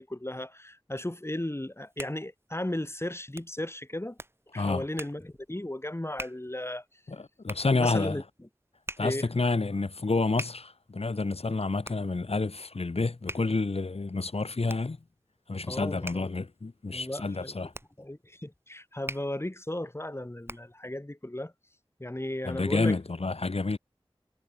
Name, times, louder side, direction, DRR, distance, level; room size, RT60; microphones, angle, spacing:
voice 1, 0.0-4.2 4.5-6.8 7.8-8.2 9.0-9.3 15.7-16.3 16.9-17.7 18.0-21.5 22.0-23.0, left 1 dB, 25° left, 3.2 m, -35 dB
Hands, 1.6-20.9, right 1 dB, 25° right, 5.5 m, -46 dB
voice 2, 7.1-8.2 9.0-15.0 15.5-17.7 22.4-23.8, left 3 dB, 90° left, 3.4 m, -29 dB
wide cardioid pair, 45°, 10 cm